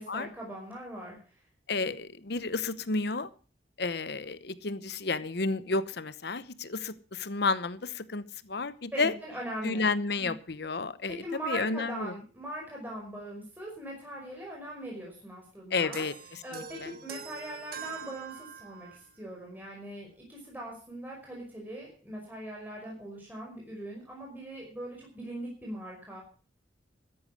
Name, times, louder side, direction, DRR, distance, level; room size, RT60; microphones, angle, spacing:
voice 1, 0.0-1.4 8.9-10.4 11.2-16.1 16.4-26.2, right 1 dB, 10° right, -3 dB, 5.4 m, -41 dB
voice 2, 1.7-3.3 3.8-8.2 8.5-9.1 9.6-11.2 11.4-12.1 15.7-16.1 16.5-16.9, left 3 dB, 60° left, 14 dB, 0.9 m, -31 dB
sound 1, 15.9-19.1, right 7 dB, 55° right, 1.5 m, -44 dB
13.5 x 10.5 x 6.3 m, 0.38 s
head